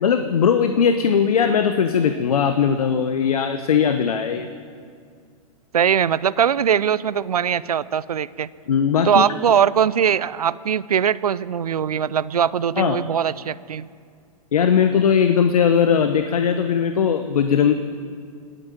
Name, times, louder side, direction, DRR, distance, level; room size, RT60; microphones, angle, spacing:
voice 1, 0.0-4.5 8.7-9.2 12.8-13.0 14.5-17.7, left 7 dB, 75° left, 9 dB, 0.9 m, -19 dB
voice 2, 5.7-8.5 9.0-13.9, right 8 dB, 85° right, 18 dB, 0.5 m, -21 dB
17.5 x 9.4 x 8.9 m, 2.2 s
hypercardioid pair, 115°, 19 cm